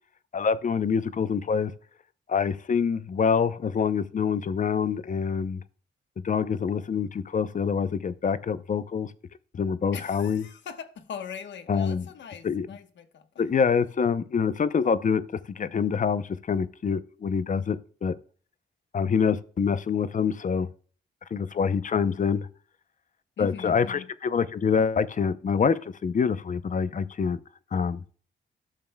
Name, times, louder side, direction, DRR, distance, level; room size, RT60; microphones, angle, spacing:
voice 1, 0.3-1.7 2.3-5.6 6.2-9.1 9.5-10.4 11.7-12.0 12.4-12.7 13.4-15.2 15.5-18.1 18.9-20.7 21.3-22.5 23.4-27.4 27.7-28.0, left 6 dB, 45° left, 0.6 m, -26 dB
voice 2, 9.9-13.4 23.4-24.1, left 7 dB, 70° left, 1.1 m, -41 dB
12.0 x 6.7 x 2.2 m
cardioid pair, 80°, 19 cm